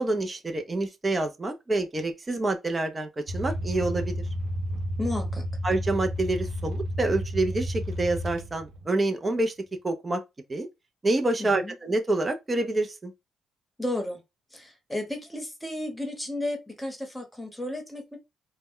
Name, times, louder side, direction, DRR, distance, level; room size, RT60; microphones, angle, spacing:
voice 1, 0.0-4.1 5.6-9.5 9.8-10.2 10.5-10.7 11.0-13.1, right 2 dB, 25° right, 0.5 m, -27 dB
sound 1, 3.3-8.8, equal, 85° right, 0.5 m, -31 dB
voice 2, 5.0-5.4 11.4-11.7 13.8-14.2 14.5-18.2, left 1 dB, 5° left, 0.9 m, -33 dB
2.1 x 2.1 x 3.5 m
cardioid pair, 90°, 0 cm